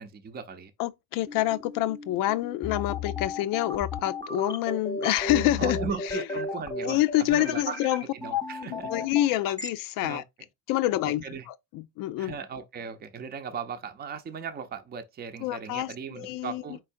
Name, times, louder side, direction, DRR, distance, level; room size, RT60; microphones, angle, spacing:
voice 1, 0.0-0.7 5.6-7.0 7.3-7.8 8.1-8.9 10.0-10.2 11.0-11.5 12.2-16.8, right 6 dB, 30° right, 0.6 m, -37 dB
voice 2, 0.8-6.3 6.8-8.0 8.3-8.4 8.7-10.2 10.7-12.3 15.4-16.6, left 14 dB, 85° left, 0.6 m, -27 dB
sound 1, 1.3-9.7, left 3 dB, 15° left, 0.9 m, -34 dB
4.6 x 3.8 x 2.6 m
cardioid pair, 140°, 32 cm